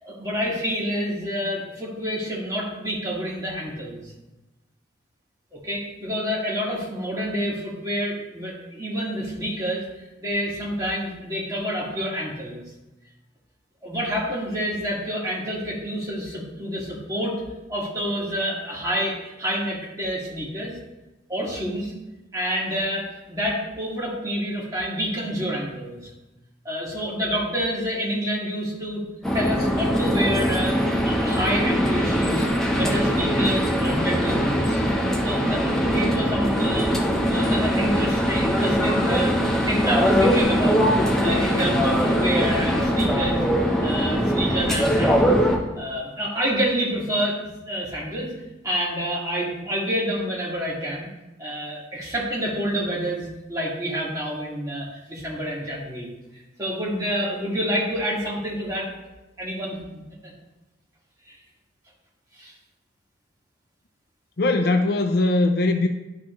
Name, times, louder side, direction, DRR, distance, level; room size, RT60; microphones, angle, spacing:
voice 1, 0.0-4.0 5.5-9.8 10.2-12.6 13.8-17.4 17.7-20.7 21.3-21.9 22.3-26.1 26.6-29.1 29.3-32.5 32.7-34.8 35.2-36.9 37.3-45.4 45.8-47.4 47.7-48.3 48.6-51.1 51.4-56.1 56.6-58.9 59.4-60.3 61.3-61.4 62.4-62.5, equal, 20° right, -5 dB, 2.1 m, -28 dB
sound 1, 29.2-45.6, equal, 5° left, 0.9 m, -21 dB
voice 2, 64.4-65.9, left 2 dB, 55° left, 5 dB, 0.6 m, -20 dB
12.0 x 4.2 x 3.1 m, 1.0 s
head